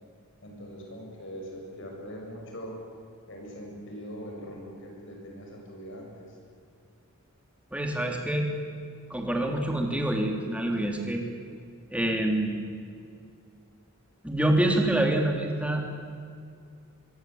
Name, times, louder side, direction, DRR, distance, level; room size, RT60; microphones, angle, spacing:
voice 1, 0.4-2.8 3.3-6.4, equal, 55° left, 0 dB, 7.9 m, -42 dB
voice 2, 7.7-8.5 9.1-11.2 11.9-12.7 14.2-15.8, right 1 dB, 5° right, 2 dB, 3.3 m, -26 dB
25.5 x 23.5 x 8.8 m, 2.2 s
head